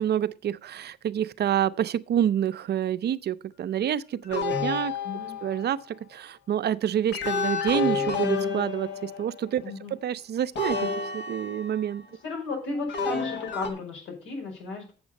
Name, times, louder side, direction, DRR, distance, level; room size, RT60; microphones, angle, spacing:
voice 1, 0.0-4.9 5.4-9.6 10.0-12.1, right 10 dB, 55° right, 0.6 m, -28 dB
sound 1, 4.3-5.7 7.1-9.5 10.6-12.0 12.9-13.7, left 4 dB, 65° left, 1.6 m, -30 dB
voice 2, 5.0-5.3 9.6-9.9 12.2-14.9, left 3 dB, 85° left, 5.1 m, -34 dB
7.9 x 7.2 x 5.2 m
cardioid pair, 90°, 20 cm